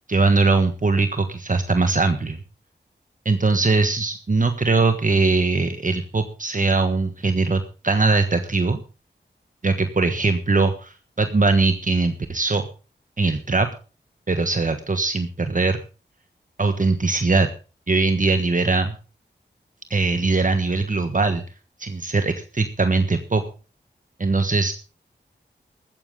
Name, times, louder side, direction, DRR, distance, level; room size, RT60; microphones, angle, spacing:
voice 1, 0.1-2.4 3.2-8.8 9.6-12.6 13.2-13.7 14.3-15.8 16.6-17.5 17.9-18.9 19.9-21.4 21.8-23.4 24.2-24.7, right 3 dB, 45° right, 8 dB, 1.4 m, -21 dB
15.5 x 14.0 x 3.8 m, 0.34 s
wide cardioid pair, 60°, 19 cm